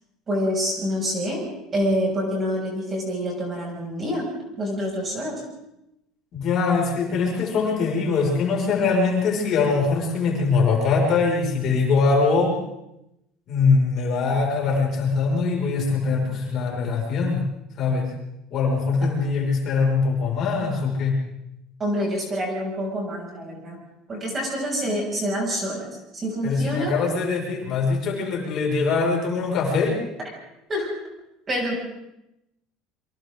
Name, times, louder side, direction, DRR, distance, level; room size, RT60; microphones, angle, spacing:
voice 1, 0.3-1.4 1.7-4.3 4.6-5.4 21.8-23.8 24.1-25.9 26.1-26.9 30.7-30.9 31.5-31.7, equal, 20° right, -1 dB, 6.8 m, -26 dB
voice 2, 6.3-12.6 13.5-17.4 17.8-18.1 18.5-21.2 26.4-30.0, left 4 dB, 40° left, -2 dB, 5.8 m, -22 dB
28.5 x 24.0 x 3.9 m, 0.87 s
cardioid pair, 165°, 0 cm